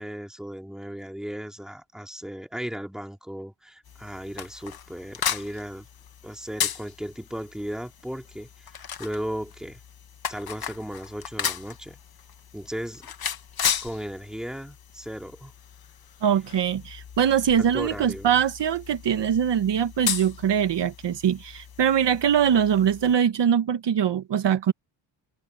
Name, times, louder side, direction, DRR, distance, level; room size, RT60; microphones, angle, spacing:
voice 1, 0.0-5.9 6.2-9.8 10.3-12.0 12.5-13.1 13.8-15.5 17.6-18.3, equal, ahead, 2.5 m, -36 dB
sound 1, 3.8-23.2, left 8 dB, 50° left, 1.6 m, -35 dB
voice 2, 16.2-24.7, right 8 dB, 60° right, 1.4 m, -22 dB
cardioid pair, 95°, 48 cm